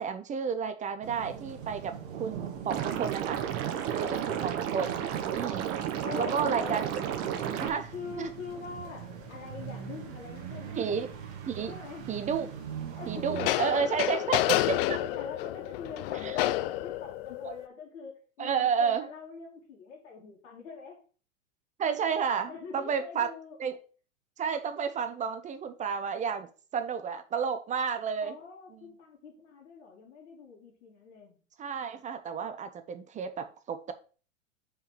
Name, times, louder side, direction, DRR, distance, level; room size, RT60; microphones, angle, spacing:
voice 1, 0.0-3.4 3.9-4.9 5.3-5.7 6.2-6.8 7.6-7.9 8.2-8.3 10.8-11.1 11.5-11.7 12.1-12.5 13.1-15.0 16.2-16.4 18.4-19.1 21.8-23.3 23.6-23.8 24.4-28.4 28.7-28.8 31.6-33.9, right 6 dB, 20° right, 10 dB, 0.6 m, -31 dB
sound 1, 1.0-13.5, right 8 dB, 55° right, 1.7 m, -42 dB
Liquid, 2.7-7.7, right 9 dB, 35° right, 1.1 m, -32 dB
voice 2, 4.0-4.6 6.0-6.9 7.5-10.9 11.7-12.1 12.9-13.4 14.0-21.0 22.5-23.6 28.2-31.4, left 5 dB, 70° left, -6 dB, 2.8 m, -44 dB
sound 2, 8.9-9.0 13.4-17.7, left 15 dB, 45° left, 0.5 m, -30 dB
5.6 x 4.8 x 5.5 m, 0.38 s
hypercardioid pair, 110°, 40 cm